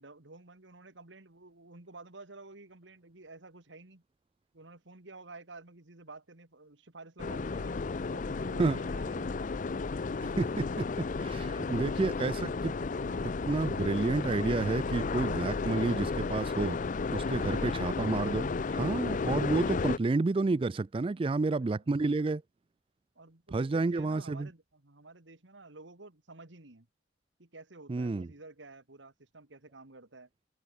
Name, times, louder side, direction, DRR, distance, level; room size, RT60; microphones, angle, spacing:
voice 1, 0.0-4.0 4.5-7.8 8.1-9.4 11.1-13.8 17.2-17.9 18.7-19.0 21.1-21.7 23.2-26.9 27.4-30.3, right 3 dB, 85° right, 2.2 m, -51 dB
sound 1, 7.2-20.0, left 4 dB, 45° left, 0.5 m, -33 dB
voice 2, 10.2-12.7 13.5-16.8 17.1-22.4 23.5-24.5 27.9-28.3, right 3 dB, 30° right, 0.4 m, -30 dB
head